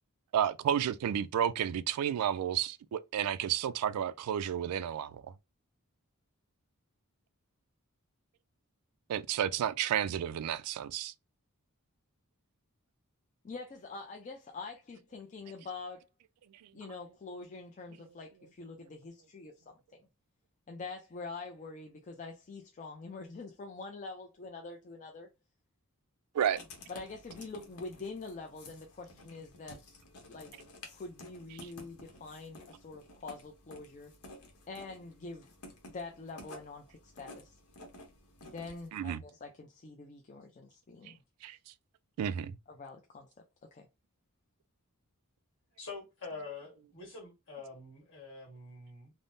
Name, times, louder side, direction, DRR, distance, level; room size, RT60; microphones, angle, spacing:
voice 1, 0.3-5.2 9.1-11.1 26.3-26.6 31.6-31.7 38.9-39.2 41.4-41.6 42.2-42.6, right 9 dB, 90° right, 0.3 m, -31 dB
voice 2, 13.4-16.1 16.7-20.1 20.7-25.3 26.9-29.8 30.3-30.5 30.9-34.1 34.7-35.5 35.9-37.6 38.4-41.2 42.7-43.3 43.7-43.9, left 3 dB, 35° left, 0.4 m, -45 dB
Writing, 26.4-38.9, left 2 dB, 80° left, 0.9 m, -53 dB
voice 3, 45.8-49.1, left 4 dB, 55° left, 1.6 m, -45 dB
3.5 x 2.0 x 2.5 m
head